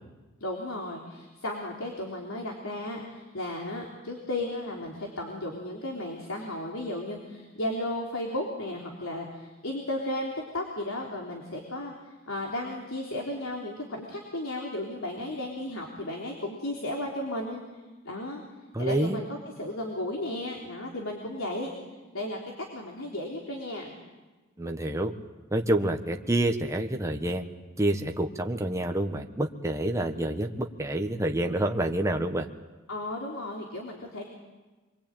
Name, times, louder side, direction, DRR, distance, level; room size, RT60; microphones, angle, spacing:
voice 1, 0.4-11.9 12.3-17.6 18.0-18.4 18.8-21.7 22.1-23.9 30.1-30.2 32.9-34.2, left 1 dB, 80° left, 0 dB, 3.7 m, -34 dB
voice 2, 18.7-19.2 24.6-25.1 25.5-27.5 27.8-32.5, right 1 dB, 15° right, 4 dB, 1.4 m, -28 dB
27.0 x 23.0 x 9.1 m, 1.2 s
head